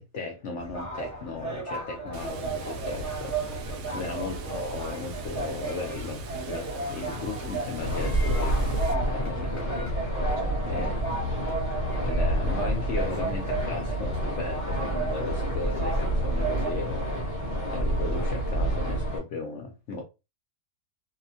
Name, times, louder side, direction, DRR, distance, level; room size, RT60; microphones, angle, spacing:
voice 1, 0.0-9.9 10.6-10.9 11.2-11.3 12.0-20.0, left 4 dB, 65° left, 0.7 m, -36 dB
sound 1, 0.6-16.7, right 3 dB, 15° right, 0.6 m, -35 dB
Water, 2.1-8.9, right 1 dB, 85° right, 1.1 m, -38 dB
voice 2, 3.9-4.2 10.4-11.3, right 4 dB, 65° right, 0.9 m, -44 dB
sound 2, 7.8-19.2, right 1 dB, 30° left, 0.8 m, -28 dB
2.8 x 2.2 x 2.6 m
omnidirectional pair, 1.6 m